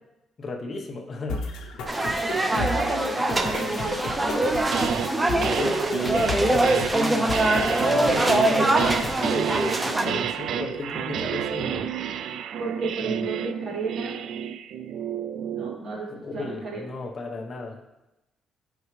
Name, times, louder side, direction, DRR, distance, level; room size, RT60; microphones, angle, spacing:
voice 1, 0.4-1.4 5.4-11.9 13.0-13.3 16.1-17.8, left 3 dB, 40° left, 1 dB, 1.1 m, -35 dB
sound 1, 1.3-9.3, left 3 dB, 80° left, 1.2 m, -34 dB
sound 2, 1.9-10.1, right 1 dB, 20° right, 0.7 m, -23 dB
voice 2, 2.2-4.1 12.6-14.1 15.5-16.8, right 3 dB, 50° right, -5 dB, 2.5 m, -33 dB
sound 3, 4.4-5.1 5.4-15.8, right 8 dB, 70° right, 0.4 m, -30 dB
10.5 x 4.8 x 3.3 m, 0.97 s
cardioid pair, 90°, 0 cm